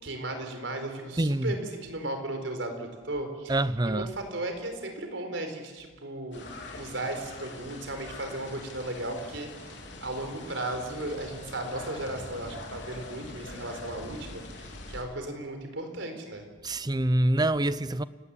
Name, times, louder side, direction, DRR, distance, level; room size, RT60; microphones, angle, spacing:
voice 1, 0.0-6.5 6.7-9.8 10.0-16.4, right 1 dB, 80° right, 4.4 m, -36 dB
voice 2, 1.2-1.5 3.5-4.1 16.6-18.0, right 1 dB, 20° right, 0.7 m, -25 dB
sound 1, 6.3-15.0, left 2 dB, 70° left, 4.3 m, -43 dB
29.5 x 18.0 x 8.6 m
head